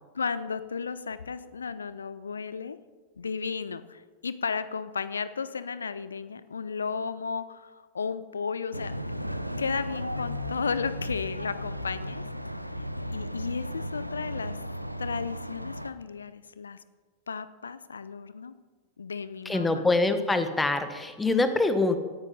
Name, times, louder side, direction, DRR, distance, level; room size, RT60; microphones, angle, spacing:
voice 1, 0.1-2.8 3.2-8.9 9.6-12.2 13.1-14.6 15.0-16.8 17.3-18.5 19.0-19.9, left 5 dB, 75° left, 15 dB, 0.6 m, -34 dB
sound 1, 8.7-15.9, equal, 90° right, 0.6 m, -35 dB
voice 2, 19.4-22.0, left 2 dB, 10° left, 9 dB, 1.3 m, -24 dB
17.0 x 9.7 x 5.5 m, 1.4 s
figure-of-eight pair, 90°, 0 cm